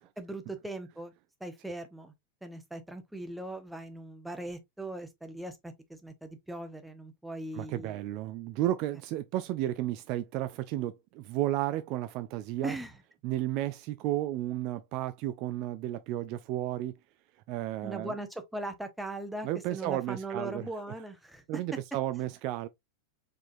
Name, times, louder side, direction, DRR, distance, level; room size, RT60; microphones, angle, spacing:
voice 1, 0.2-1.1 1.4-2.1 2.4-8.0 12.6-12.9 17.8-21.6, right 2 dB, 5° right, 1.0 m, -39 dB
voice 2, 7.5-12.8 13.2-17.0 17.5-18.1 19.4-20.7 21.5-22.7, right 14 dB, 40° right, 0.4 m, -33 dB
4.9 x 3.7 x 2.5 m
figure-of-eight pair, 90°, 0 cm